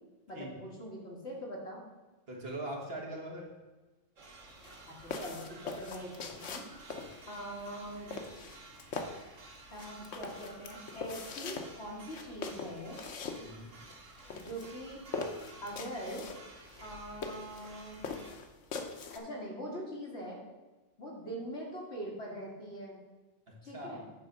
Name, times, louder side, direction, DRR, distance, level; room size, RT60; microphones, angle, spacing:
voice 1, 0.3-1.8 4.9-6.6 7.3-8.1 9.7-13.0 14.4-15.0 15.6-16.3 16.8-18.1 19.1-20.4 21.0-23.0 23.6-24.1, equal, 60° left, -3 dB, 2.3 m, -42 dB
voice 2, 2.3-3.5 13.4-13.7 23.5-24.0, right 1 dB, 55° right, -1 dB, 1.8 m, -41 dB
sound 1, 4.2-18.3, right 2 dB, 85° right, 1.5 m, -53 dB
sound 2, 4.5-19.2, left 4 dB, 80° left, 1.2 m, -42 dB
9.4 x 3.6 x 6.5 m, 1.2 s
omnidirectional pair, 1.3 m